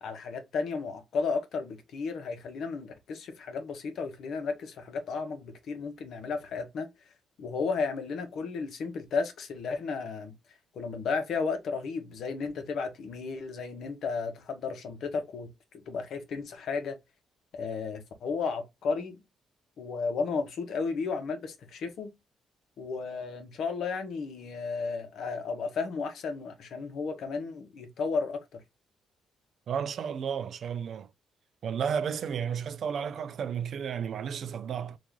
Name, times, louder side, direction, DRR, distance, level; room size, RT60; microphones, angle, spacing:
voice 1, 0.0-6.9 7.4-10.3 10.7-15.5 15.7-17.0 17.5-19.2 19.8-22.1 22.8-28.6, left 4 dB, 70° left, 0.9 m, -33 dB
voice 2, 29.7-31.1 31.6-35.0, right 7 dB, 60° right, 0.3 m, -32 dB
3.0 x 2.5 x 3.6 m
cardioid pair, 90°, 0 cm